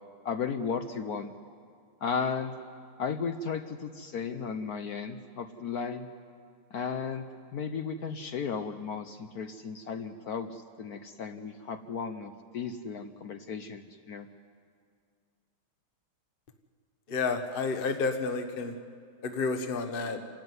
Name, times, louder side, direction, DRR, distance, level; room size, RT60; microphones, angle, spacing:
voice 1, 0.2-1.3 2.0-2.5 3.0-6.1 6.7-7.3 7.5-14.3, left 6 dB, 60° left, 9 dB, 1.0 m, -35 dB
voice 2, 17.1-18.7 19.2-20.2, left 4 dB, 35° left, 6 dB, 1.0 m, -30 dB
28.5 x 13.5 x 9.6 m, 2.1 s
omnidirectional pair, 2.4 m